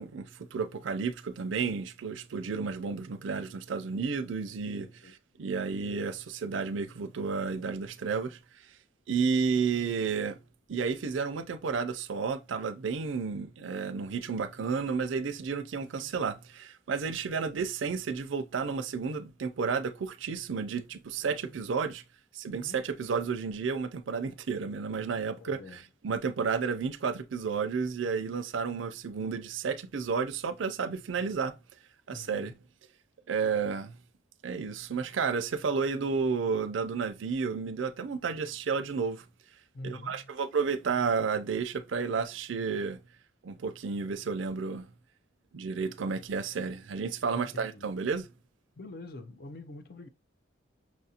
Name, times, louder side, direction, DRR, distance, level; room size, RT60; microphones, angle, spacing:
voice 1, 0.0-8.4 9.1-10.4 10.7-22.0 22.3-31.5 32.1-32.5 33.3-33.9 34.4-39.2 39.8-43.0 43.4-44.9 45.5-48.3, right 5 dB, 85° right, 0.5 m, -32 dB
voice 2, 4.8-5.2 22.4-22.8 25.4-25.8 32.1-32.5 39.7-40.3 47.3-47.9 48.8-50.1, left 2 dB, 50° left, 0.4 m, -45 dB
6.0 x 2.5 x 2.7 m
head